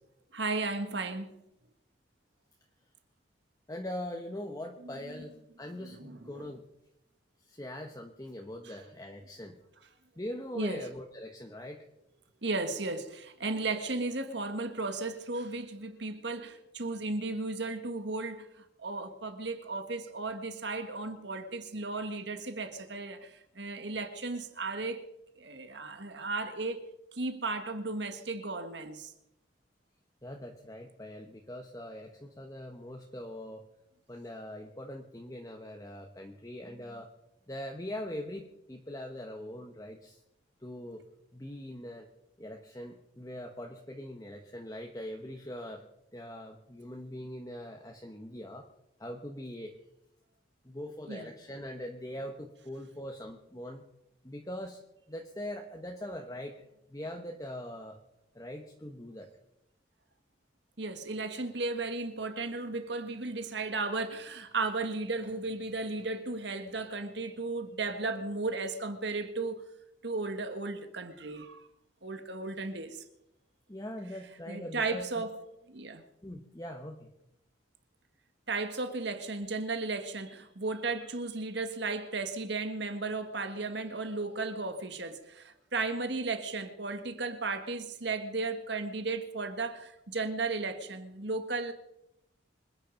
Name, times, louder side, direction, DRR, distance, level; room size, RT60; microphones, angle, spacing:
voice 1, 0.3-1.4 4.8-5.3 5.8-6.5 8.6-8.8 10.5-10.9 12.4-25.0 25.4-26.8 27.1-29.1 51.1-51.3 60.8-69.6 70.0-71.6 72.0-73.0 74.5-75.4 75.7-76.0 78.5-91.7, right 3 dB, 65° right, 1.7 m, -35 dB
voice 2, 3.7-6.6 7.5-9.6 10.2-11.8 30.2-33.6 34.1-37.1 37.5-40.2 40.6-41.0 41.3-42.1 42.4-45.8 46.1-48.6 49.0-49.7 50.6-53.8 54.2-54.8 55.1-56.5 56.9-58.0 58.3-59.3 73.7-75.2 76.2-77.1, left 1 dB, 20° left, 1.2 m, -42 dB
26.0 x 9.8 x 5.3 m
head